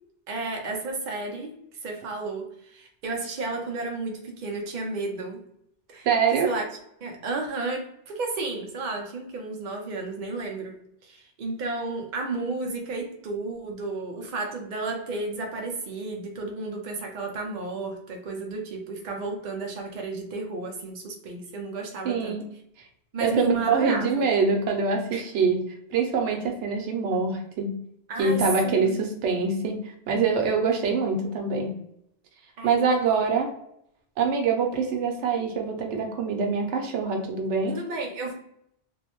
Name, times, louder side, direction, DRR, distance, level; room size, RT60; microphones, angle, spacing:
voice 1, 0.3-5.4 5.9-6.6 7.0-22.4 23.1-24.2 25.1-25.2 28.1-29.0 32.6-33.2 37.7-38.3, right 3 dB, 55° right, 2 dB, 0.6 m, -32 dB
voice 2, 6.0-6.5 22.0-22.5 23.2-25.6 25.9-27.8 28.2-31.8 32.6-33.5 34.2-37.8, right 5 dB, 90° right, 3 dB, 0.9 m, -24 dB
2.5 x 2.0 x 2.8 m, 0.74 s
omnidirectional pair, 1.2 m